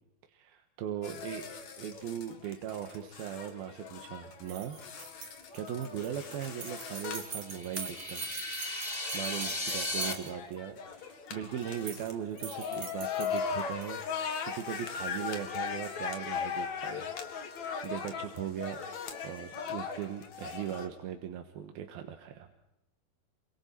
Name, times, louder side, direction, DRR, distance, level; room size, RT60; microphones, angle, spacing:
voice 1, 0.3-8.3 9.1-18.8 19.2-22.5, right 9 dB, 80° right, 6 dB, 3.1 m, -39 dB
sound 1, 1.0-20.9, left 6 dB, 55° left, 3.1 m, -39 dB
sound 2, 4.4-10.5 11.6-12.1 12.4-13.9, right 7 dB, 60° right, 3.1 m, -44 dB
sound 3, 7.4-10.1, left 2 dB, 15° left, 2.0 m, -36 dB
28.0 x 25.5 x 4.5 m, 0.88 s
omnidirectional pair, 4.3 m